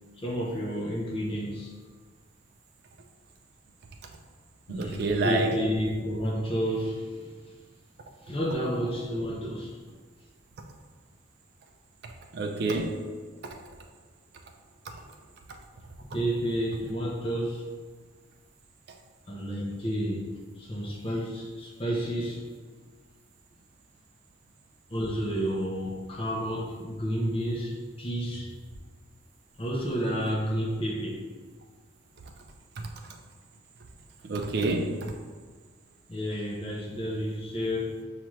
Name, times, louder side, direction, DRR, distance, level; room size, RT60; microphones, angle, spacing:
voice 1, 0.2-1.7 4.7-7.4 8.2-9.8 14.9-15.0 16.1-17.7 19.3-22.4 24.9-28.5 29.6-31.2 36.1-38.0, equal, 25° left, -3 dB, 0.6 m, -31 dB
voice 2, 4.7-5.5 12.3-12.9 34.2-35.1, right 2 dB, 55° right, 2 dB, 0.3 m, -28 dB
5.6 x 2.4 x 3.1 m, 1.5 s
head